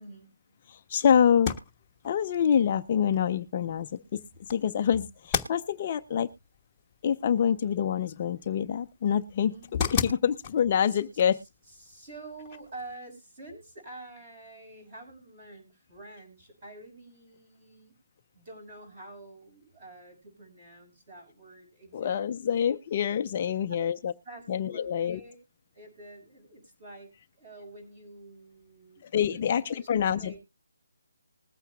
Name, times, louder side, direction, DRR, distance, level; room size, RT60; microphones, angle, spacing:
voice 1, 0.0-0.8 4.0-4.4 9.4-9.7 10.8-11.0 11.7-17.9 18.3-22.7 23.8-23.9 24.2-25.4 25.7-29.9 30.2-30.4, right 2 dB, 25° right, 3 dB, 6.0 m, -48 dB
voice 2, 0.7-1.5 2.0-4.2 4.5-6.3 7.0-11.4 21.9-24.1 24.5-25.2 29.1-30.4, left 8 dB, 30° left, 8 dB, 0.5 m, -26 dB
sound 1, 1.3-12.9, left 6 dB, 10° left, 1.2 m, -39 dB
21.0 x 8.9 x 2.3 m, 0.25 s
hypercardioid pair, 170°, 0 cm